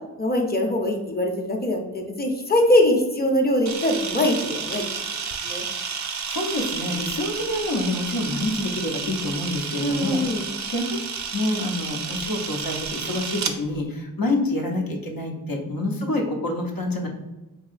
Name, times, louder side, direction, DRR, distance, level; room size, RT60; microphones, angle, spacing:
voice 1, 0.2-4.8 5.4-5.6 9.8-10.5, left 1 dB, 30° left, 2 dB, 0.6 m, -22 dB
Camera, 3.6-13.5, right 5 dB, 55° right, 0.4 m, -31 dB
voice 2, 6.3-11.0 11.3-17.1, left 1 dB, 80° left, 1 dB, 0.7 m, -27 dB
4.1 x 2.7 x 2.4 m, 1.1 s
wide cardioid pair, 65°, 34 cm